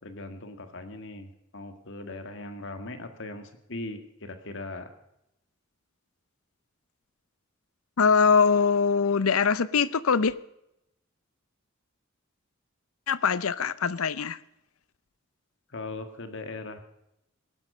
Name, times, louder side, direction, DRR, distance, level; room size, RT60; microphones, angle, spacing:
voice 1, 0.0-4.9 15.7-16.8, left 2 dB, 65° left, 1.9 m, -39 dB
voice 2, 8.0-10.3 13.1-14.4, left 5 dB, 85° left, 0.6 m, -22 dB
18.5 x 12.0 x 5.5 m
head